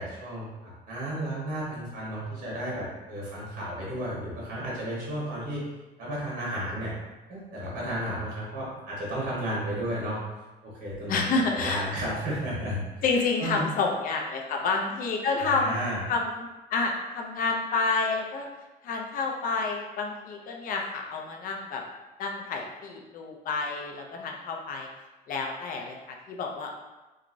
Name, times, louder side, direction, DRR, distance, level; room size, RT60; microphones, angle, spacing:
voice 1, 0.0-5.6 6.0-6.9 7.3-10.2 10.6-11.2 11.5-13.0 13.4-13.6 15.4-16.0, right 1 dB, 55° right, -6 dB, 1.1 m, -33 dB
voice 2, 11.1-11.8 13.0-15.7 16.1-18.5 18.8-21.8 22.2-24.9 25.3-26.7, left 4 dB, 55° left, 1 dB, 0.5 m, -29 dB
3.0 x 2.4 x 2.5 m, 1.1 s
cardioid pair, 110°, 17 cm